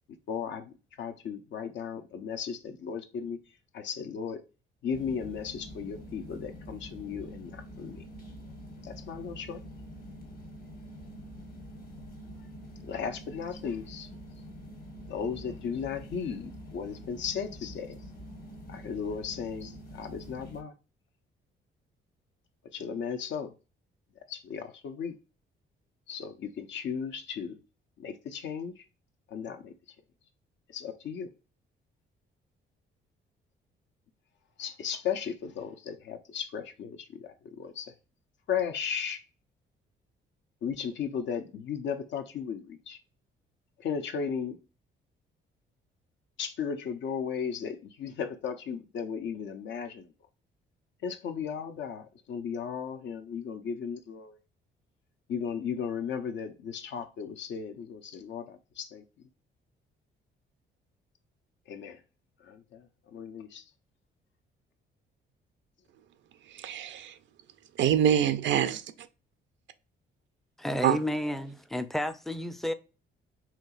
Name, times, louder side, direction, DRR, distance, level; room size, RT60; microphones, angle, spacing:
voice 1, 0.3-3.4 3.7-4.4 4.8-8.1 8.8-9.6 12.8-14.1 15.1-18.0 18.7-20.7 22.7-23.5 24.3-25.1 26.1-27.6 28.0-28.9 29.3-29.7 30.7-31.3 34.6-37.9 38.5-39.2 40.6-43.0 43.8-44.6 46.4-50.1 51.0-54.4 55.3-59.0 61.7-62.0 62.4-63.7, left 7 dB, 65° left, 0.6 m, -36 dB
sound 1, 4.9-20.6, equal, 45° left, 1.2 m, -46 dB
voice 2, 66.6-67.1 67.8-68.8 70.8-71.0, right 10 dB, 65° right, 0.5 m, -25 dB
voice 3, 70.6-72.7, left 1 dB, ahead, 0.4 m, -31 dB
4.4 x 2.8 x 2.4 m
cardioid pair, 90°, 20 cm